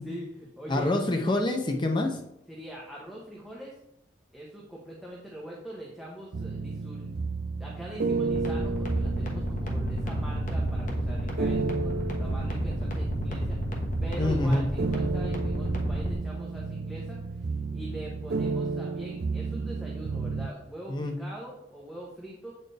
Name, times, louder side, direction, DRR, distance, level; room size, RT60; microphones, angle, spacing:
voice 1, 0.0-1.0 2.5-3.8 4.3-7.3 7.6-13.6 14.0-22.5, right 1 dB, ahead, -4 dB, 0.9 m, -43 dB
voice 2, 0.7-2.2 14.2-14.6 20.9-21.1, left 2 dB, 25° left, 3 dB, 0.6 m, -26 dB
sound 1, 6.3-20.5, right 4 dB, 60° right, 0.4 m, -32 dB
sound 2, 8.3-16.1, equal, 45° left, 1.2 m, -32 dB
7.9 x 4.3 x 3.4 m, 0.80 s
head